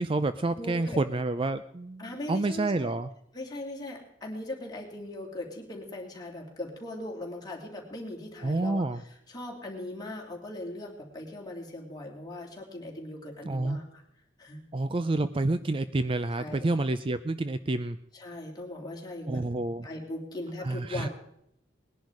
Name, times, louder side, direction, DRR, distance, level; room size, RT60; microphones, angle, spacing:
voice 1, 0.0-3.1 8.4-9.0 13.4-13.8 14.7-18.0 19.3-19.9 20.6-21.1, right 2 dB, 30° right, 12 dB, 0.4 m, -29 dB
voice 2, 0.6-1.0 2.0-2.9 3.3-9.0 9.3-14.0 14.4-14.6 16.4-16.7 18.1-19.4 19.8-21.1, left 1 dB, 20° left, -1 dB, 3.1 m, -39 dB
20.0 x 10.5 x 4.8 m, 0.74 s
head